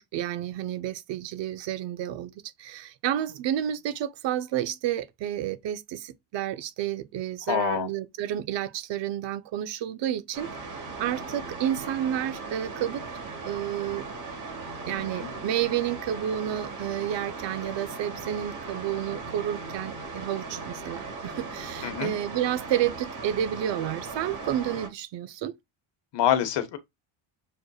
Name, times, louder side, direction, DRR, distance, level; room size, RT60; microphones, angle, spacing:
voice 1, 0.0-2.3 2.6-13.0 13.5-14.1 14.9-25.5, right 11 dB, 60° right, 0.6 m, -30 dB
voice 2, 7.5-7.9 14.9-15.3 21.8-22.1 26.1-26.8, left 10 dB, 55° left, 0.9 m, -26 dB
sound 1, 10.3-24.9, right 3 dB, 40° right, 1.2 m, -38 dB
6.5 x 2.5 x 2.3 m
cardioid pair, 145°, 49 cm